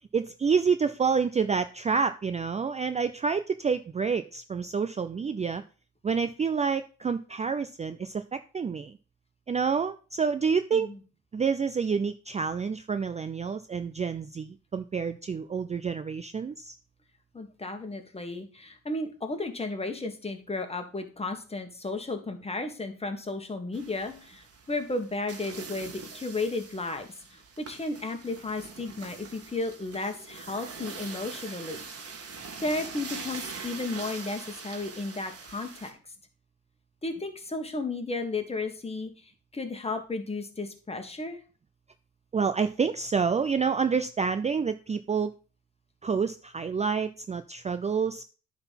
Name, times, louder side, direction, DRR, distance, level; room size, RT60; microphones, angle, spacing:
voice 1, 0.1-5.6 6.0-9.0 9.5-10.9 11.3-16.7 42.3-45.3 46.0-48.2, right 5 dB, 25° right, 11 dB, 0.4 m, -28 dB
voice 2, 17.3-31.8 32.6-36.0 37.0-41.4, left 2 dB, 20° left, 6 dB, 1.7 m, -34 dB
sound 1, 23.7-35.9, right 5 dB, 50° right, 1.8 m, -43 dB
9.6 x 4.1 x 5.8 m, 0.37 s
cardioid pair, 90°, 30 cm